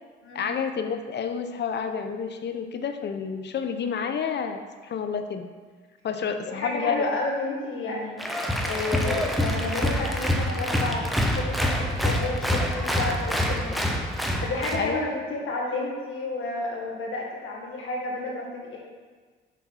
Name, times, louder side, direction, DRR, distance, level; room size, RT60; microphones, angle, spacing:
voice 1, 0.3-5.5 6.0-7.2 14.8-15.0, left 6 dB, 55° left, 8 dB, 0.7 m, -29 dB
voice 2, 6.5-14.0 14.4-18.8, left 2 dB, 75° left, -2 dB, 1.7 m, -31 dB
Applause, 8.2-14.9, equal, ahead, 0.8 m, -26 dB
6.1 x 4.1 x 5.7 m, 1.5 s
cardioid pair, 75°, 21 cm